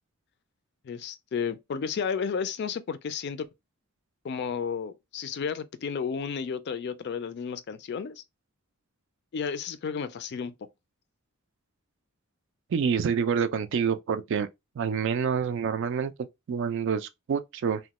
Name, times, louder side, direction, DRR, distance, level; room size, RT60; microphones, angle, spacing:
voice 1, 0.8-3.5 4.2-8.2 9.3-10.5, left 6 dB, 50° left, 0.3 m, -32 dB
voice 2, 12.7-14.5 14.8-17.8, right 6 dB, 60° right, 0.3 m, -27 dB
3.0 x 2.1 x 2.8 m
head